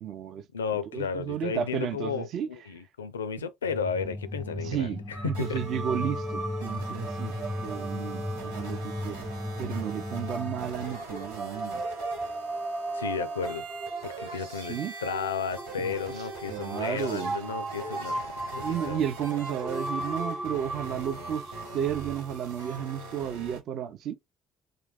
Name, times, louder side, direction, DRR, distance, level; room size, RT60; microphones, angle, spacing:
voice 1, 0.0-0.4 0.9-2.5 4.6-7.3 7.6-9.3 9.6-11.8 14.7-14.9 15.8-17.4 18.6-24.1, right 9 dB, 55° right, 0.6 m, -33 dB
voice 2, 0.5-5.6 12.9-13.6 14.0-19.1, left 6 dB, 80° left, 0.4 m, -33 dB
sound 1, 3.6-11.0, left 1 dB, 5° left, 0.3 m, -37 dB
sound 2, 5.1-23.3, right 2 dB, 25° right, 1.1 m, -38 dB
sound 3, 5.3-23.6, right 2 dB, 80° right, 1.2 m, -41 dB
3.8 x 2.6 x 3.4 m
figure-of-eight pair, 50°, 0 cm